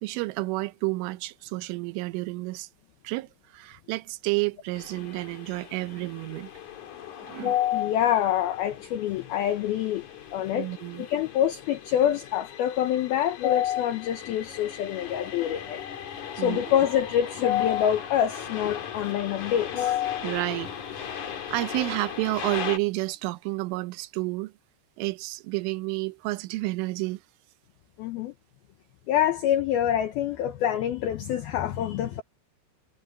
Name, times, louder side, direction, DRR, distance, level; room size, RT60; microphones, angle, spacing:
voice 1, 0.0-2.7 3.0-6.5 7.2-7.6 10.5-11.1 16.4-16.6 20.2-20.7 21.0-24.5 25.0-27.2, right 21 dB, 80° right, 3.2 m, -30 dB
sound 1, 4.7-22.8, left 8 dB, 45° left, 3.0 m, -39 dB
voice 2, 7.4-10.1 10.3-10.7 11.0-15.8 16.3-20.3 28.0-28.3 29.1-32.2, left 10 dB, 90° left, 2.2 m, -26 dB
omnidirectional pair, 5.7 m